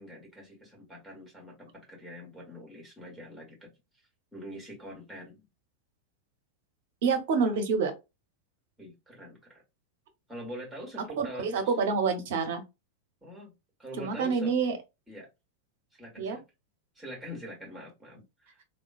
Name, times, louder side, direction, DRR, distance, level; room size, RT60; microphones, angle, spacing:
voice 1, 0.0-3.7 4.3-5.4 8.8-9.6 10.3-11.7 13.2-13.5 13.8-14.5 15.1-15.3 15.9-16.4 16.9-18.6, equal, 5° right, 1.4 m, -44 dB
voice 2, 7.0-7.9 11.2-12.6 14.0-14.7 16.2-16.4, right 5 dB, 55° right, 0.6 m, -27 dB
2.9 x 2.1 x 2.4 m
figure-of-eight pair, 90°, 0 cm